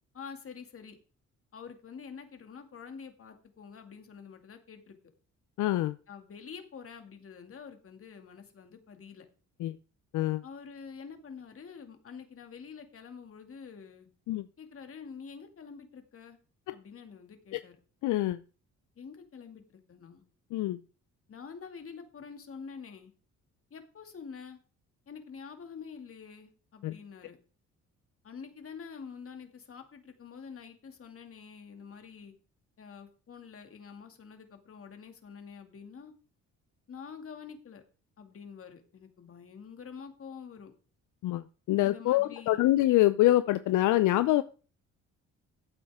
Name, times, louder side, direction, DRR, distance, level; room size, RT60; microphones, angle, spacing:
voice 1, 0.1-1.0 1.5-5.0 6.1-9.3 10.4-14.1 14.6-16.4 16.7-17.7 19.0-20.2 21.3-23.1 23.7-24.6 25.1-27.4 28.2-32.3 32.8-36.1 36.9-37.8 38.2-40.7 41.8-42.7, left 6 dB, 45° left, 6 dB, 2.4 m, -47 dB
voice 2, 5.6-5.9 9.6-9.8 10.1-10.4 14.3-14.4 16.7-16.8 17.5-17.6 18.0-18.4 20.5-20.8 26.8-26.9 41.2-44.4, left 15 dB, 80° left, 14 dB, 0.6 m, -25 dB
14.5 x 8.6 x 3.6 m, 0.37 s
cardioid pair, 90°, 30 cm